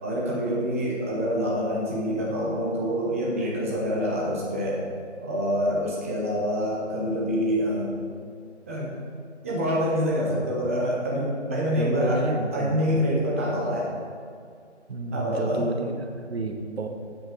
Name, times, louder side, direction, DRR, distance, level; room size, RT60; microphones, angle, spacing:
voice 1, 0.0-4.8 5.2-7.9 8.7-8.9 9.4-12.3 12.5-13.9 15.1-15.6, equal, 10° right, -4 dB, 0.8 m, -26 dB
voice 2, 11.7-12.8 14.9-16.9, right 2 dB, 60° right, 3 dB, 1.2 m, -30 dB
7.8 x 7.1 x 5.0 m, 2.2 s
figure-of-eight pair, 155°, 35 cm